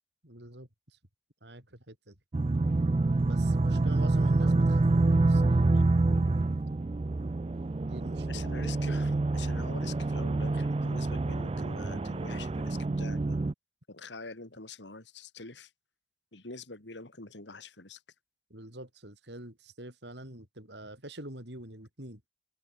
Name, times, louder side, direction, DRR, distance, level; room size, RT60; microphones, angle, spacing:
voice 1, 0.2-1.0 1.4-2.2 3.2-5.6 7.8-8.5 18.5-22.2, right 1 dB, 70° right, 7.6 m, -46 dB
sound 1, 2.3-13.5, right 2 dB, 30° right, 0.4 m, -27 dB
voice 2, 8.3-13.4 13.9-15.7 16.3-18.0, left 3 dB, 80° left, 3.4 m, -45 dB
open air
head